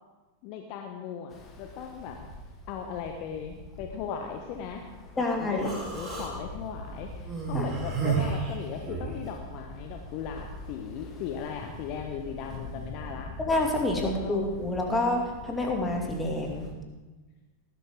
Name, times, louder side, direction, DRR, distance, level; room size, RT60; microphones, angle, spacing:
voice 1, 0.4-2.2 2.7-4.8 5.1-13.3 14.0-14.4, left 7 dB, 45° left, 3 dB, 1.2 m, -38 dB
Ocean, 1.3-16.7, left 2 dB, 25° left, 2.0 m, -44 dB
voice 2, 5.2-5.7 7.5-7.7 13.4-16.6, left 2 dB, 10° left, 0 dB, 2.5 m, -28 dB
Human voice, 5.6-6.3 7.2-9.2, right 5 dB, 20° right, 3.5 m, -31 dB
18.5 x 11.5 x 3.8 m, 1.2 s
figure-of-eight pair, 90°, 0 cm